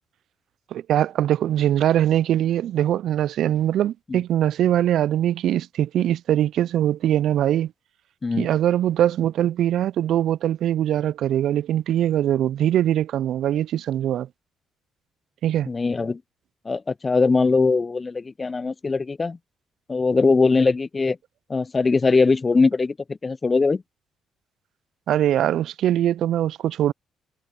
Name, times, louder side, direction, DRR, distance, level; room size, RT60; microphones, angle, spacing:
voice 1, 0.7-7.7 8.4-14.3 15.4-15.7 25.1-26.9, right 11 dB, 70° right, 0.3 m, -22 dB
voice 2, 15.7-16.2 16.7-19.4 19.9-21.2 21.5-23.8, left 4 dB, 35° left, 0.4 m, -21 dB
hypercardioid pair, 50°, 0 cm